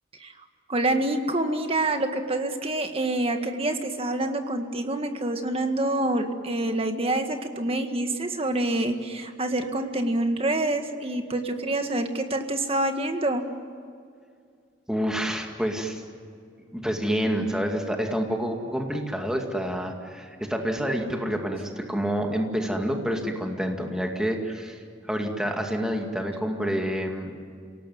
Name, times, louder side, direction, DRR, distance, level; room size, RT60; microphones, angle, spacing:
voice 1, 0.7-13.4, right 1 dB, 30° right, 6 dB, 1.8 m, -26 dB
voice 2, 14.9-16.0 16.7-27.3, equal, 5° right, 2 dB, 2.2 m, -28 dB
28.0 x 18.0 x 9.6 m, 2.3 s
head